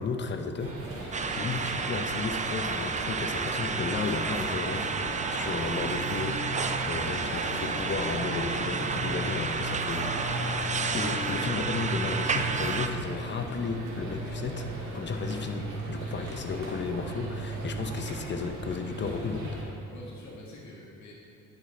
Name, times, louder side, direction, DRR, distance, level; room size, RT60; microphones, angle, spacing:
voice 1, 0.0-10.6 10.9-19.6, left 4 dB, 40° left, 6 dB, 0.8 m, -34 dB
sound 1, 0.6-19.6, right 2 dB, 90° right, 2.0 m, -37 dB
sound 2, 1.1-12.9, right 4 dB, 25° right, 0.5 m, -31 dB
voice 2, 9.1-10.0 19.9-21.1, left 2 dB, 65° left, -5 dB, 2.1 m, -46 dB
10.0 x 6.7 x 4.3 m, 2.9 s
cardioid pair, 90°, 30 cm